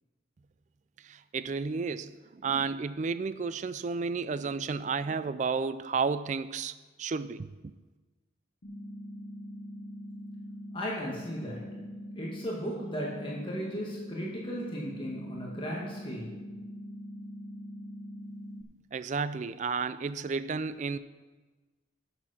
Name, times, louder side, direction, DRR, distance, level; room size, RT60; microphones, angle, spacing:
voice 1, 1.0-6.7 7.0-7.5 18.9-21.0, right 5 dB, 40° right, 0.3 m, -32 dB
sound 1, 8.6-18.6, equal, 70° left, 1.3 m, -43 dB
voice 2, 10.7-11.6 12.2-16.3, equal, 25° left, 1.8 m, -36 dB
10.5 x 6.8 x 5.8 m
head